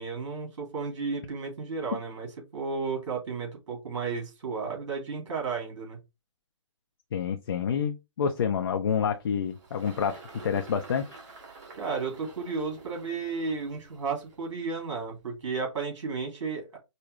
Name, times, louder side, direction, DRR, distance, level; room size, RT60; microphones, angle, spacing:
voice 1, 0.0-2.3 2.5-6.0 11.7-16.8, right 4 dB, 60° right, 2.6 m, -33 dB
voice 2, 7.1-11.2, left 7 dB, 50° left, 0.6 m, -28 dB
Engine, 8.8-15.4, right 4 dB, 35° right, 2.0 m, -50 dB
5.3 x 2.2 x 3.2 m
figure-of-eight pair, 140°, 16 cm